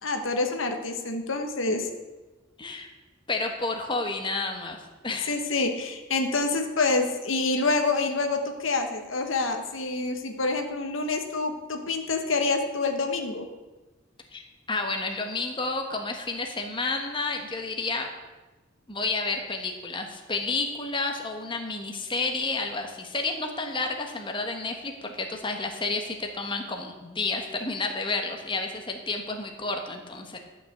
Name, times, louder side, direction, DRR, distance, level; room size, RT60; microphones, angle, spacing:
voice 1, 0.0-1.9 5.3-13.4, left 3 dB, 85° left, 5 dB, 1.3 m, -27 dB
voice 2, 3.3-4.8 5.0-5.3 14.3-18.1 18.9-30.4, left 3 dB, 25° left, 3 dB, 1.3 m, -30 dB
11.5 x 5.9 x 7.9 m, 1.1 s
head